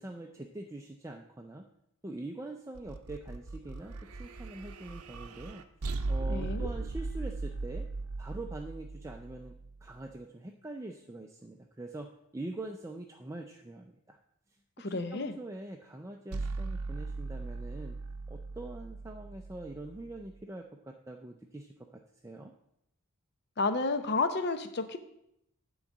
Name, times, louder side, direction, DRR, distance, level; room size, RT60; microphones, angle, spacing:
voice 1, 0.0-1.7 2.0-5.6 6.1-7.9 8.2-9.5 9.8-14.2 14.8-18.0 18.3-22.5, right 2 dB, 15° right, 2 dB, 0.4 m, -44 dB
sound 1, 2.7-10.1 16.3-20.4, right 3 dB, 80° right, 0.6 m, -38 dB
voice 2, 6.3-6.7 14.8-15.3 23.6-25.0, left 3 dB, 50° left, 9 dB, 0.7 m, -31 dB
9.5 x 3.9 x 7.3 m, 0.79 s
head